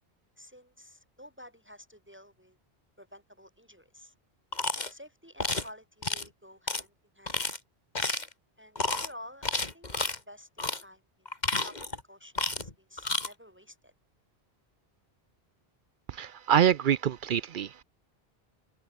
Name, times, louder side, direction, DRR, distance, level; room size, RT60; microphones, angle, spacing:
voice 1, 0.4-2.6 3.0-4.1 4.9-7.4 8.6-11.0 11.6-13.9, equal, 10° right, 6.4 m, -51 dB
sound 1, 4.5-4.9 5.4-5.7 6.0-6.3 6.7-6.8 7.3-7.6 7.9-8.3 8.8-9.1 9.4-10.2 10.6-10.8 11.3-12.0 12.3-12.7 13.0-13.3, left 2 dB, 45° left, 2.5 m, -31 dB
voice 2, 16.1-17.8, right 9 dB, 60° right, 0.7 m, -26 dB
omnidirectional pair, 1.1 m